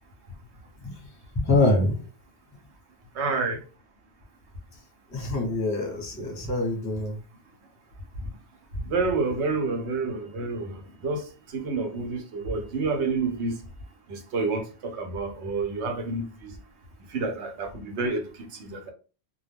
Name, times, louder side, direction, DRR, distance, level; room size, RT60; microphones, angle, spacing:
voice 1, 1.3-2.0 5.1-7.2, left 2 dB, 20° left, 0.6 m, -25 dB
voice 2, 3.1-3.6 8.9-13.5 14.1-16.5 17.1-18.9, right 3 dB, 80° right, 1.0 m, -29 dB
2.3 x 2.1 x 3.3 m
omnidirectional pair, 1.1 m